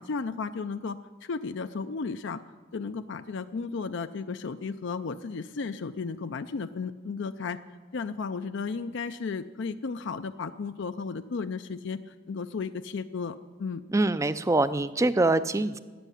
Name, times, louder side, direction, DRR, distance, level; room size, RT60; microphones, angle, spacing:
voice 1, 0.0-2.4 2.7-7.6 7.9-12.0 12.3-13.8, left 4 dB, 60° left, 10 dB, 0.5 m, -34 dB
voice 2, 13.9-15.8, right 2 dB, 15° right, 15 dB, 0.4 m, -24 dB
14.0 x 9.0 x 9.9 m, 1.4 s
head